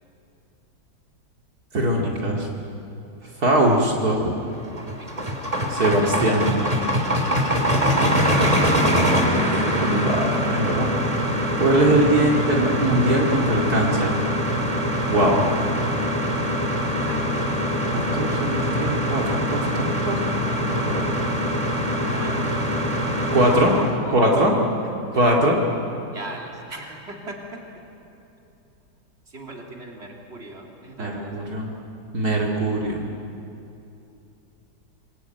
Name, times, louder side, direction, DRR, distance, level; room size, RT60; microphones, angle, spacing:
voice 1, 1.7-2.5 3.4-4.3 5.7-6.7 9.8-10.9 11.2-11.3 11.6-14.1 15.1-15.4 17.8-20.3 20.7-21.1 23.3-23.8 24.1-24.5 25.1-25.6 31.0-31.7 32.1-33.0, right 1 dB, 65° right, -1 dB, 2.9 m, -21 dB
sound 1, 4.5-23.9, equal, 20° right, 2.9 m, -23 dB
voice 2, 5.0-5.3 5.8-6.5 15.8-17.6 21.7-22.9 24.0-24.5 26.1-27.3 29.3-31.5, right 2 dB, 40° right, 0 dB, 3.3 m, -39 dB
27.5 x 21.5 x 9.2 m, 2.8 s
omnidirectional pair, 1.8 m